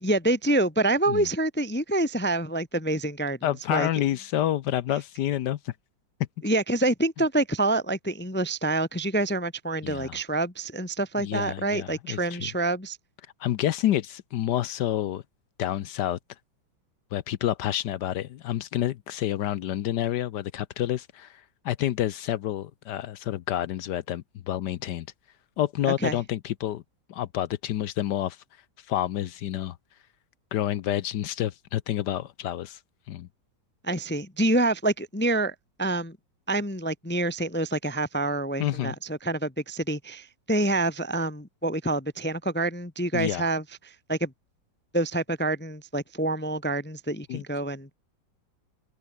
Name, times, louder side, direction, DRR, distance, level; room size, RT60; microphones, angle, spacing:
voice 1, 0.0-3.4 3.7-3.9 6.4-13.0 26.0-26.2 33.8-36.2 36.5-44.3 44.9-47.9, right 2 dB, 10° left, 0.5 m, -27 dB
voice 2, 3.4-5.7 9.8-10.2 11.2-12.5 13.4-15.2 15.6-16.2 17.1-25.1 25.6-26.8 27.1-28.4 28.9-29.8 30.5-32.8 33.1-33.3 38.6-38.9 43.1-43.5 47.3-47.4, left 12 dB, 70° left, 1.3 m, -29 dB
omnidirectional pair, 2.1 m